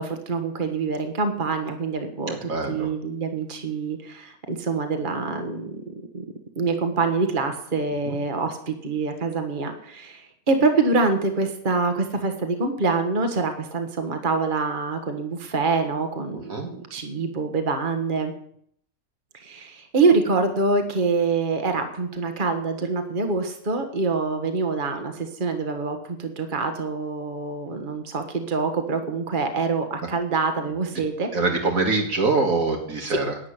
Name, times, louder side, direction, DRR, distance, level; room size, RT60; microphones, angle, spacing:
voice 1, 0.0-6.2 6.5-18.3 19.3-31.3 33.1-33.2, right 4 dB, 35° right, 6 dB, 1.6 m, -25 dB
voice 2, 2.5-2.9 8.1-8.2 16.5-16.7 31.3-33.4, right 3 dB, 70° right, 2 dB, 2.1 m, -24 dB
11.0 x 8.4 x 9.9 m, 0.67 s
omnidirectional pair, 1.5 m